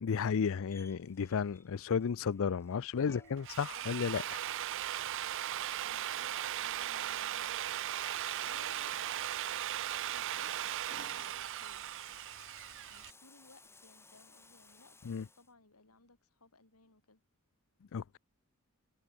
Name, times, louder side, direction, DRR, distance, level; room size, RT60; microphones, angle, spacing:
voice 1, 0.0-4.4 15.1-15.2 17.9-18.2, left 6 dB, 65° left, 0.4 m, -33 dB
Bathtub (filling or washing), 0.7-15.5, left 3 dB, 10° left, 8.0 m, -61 dB
voice 2, 2.7-3.5 5.8-7.6 8.5-11.8 12.9-17.2, left 3 dB, 80° left, 4.0 m, -61 dB
Drill, 3.3-13.1, right 12 dB, 60° right, 0.5 m, -38 dB
sound 1, 10.9-12.0, right 4 dB, 35° right, 2.5 m, -59 dB
head